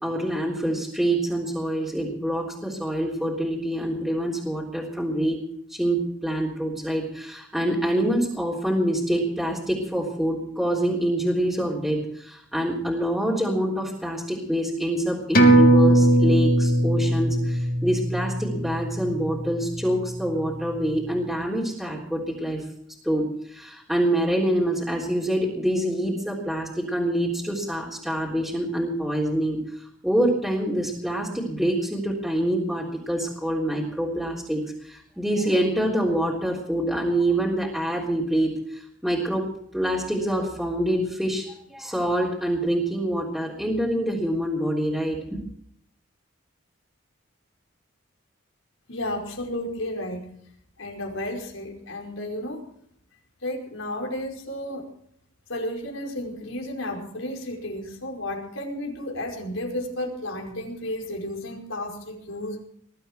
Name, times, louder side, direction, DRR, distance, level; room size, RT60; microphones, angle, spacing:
voice 1, 0.0-5.4 5.7-22.6 23.0-29.6 30.0-39.5 39.7-45.2, right 1 dB, ahead, -5 dB, 3.4 m, -26 dB
sound 1, 15.3-20.3 20.6-20.7, right 1 dB, 45° left, 3.0 m, -20 dB
voice 2, 48.9-50.3 50.8-52.6 53.4-54.9 55.5-62.6, left 1 dB, 80° left, 1 dB, 5.1 m, -32 dB
20.5 x 13.0 x 4.5 m, 0.65 s
head